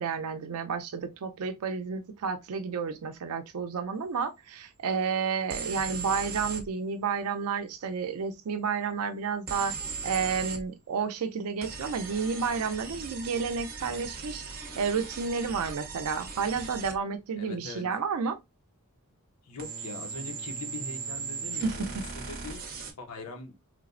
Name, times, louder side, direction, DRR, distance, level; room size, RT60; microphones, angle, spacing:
voice 1, 0.0-9.7 10.0-18.4 21.6-21.8, right 5 dB, 75° right, 0.4 m, -31 dB
sound 1, 5.5-6.7 9.5-10.6 11.6-17.0 19.6-22.9, right 5 dB, 45° right, 0.7 m, -38 dB
voice 2, 17.4-17.9 19.4-22.6 23.0-23.5, left 3 dB, 85° left, 0.7 m, -41 dB
3.2 x 2.0 x 2.4 m
head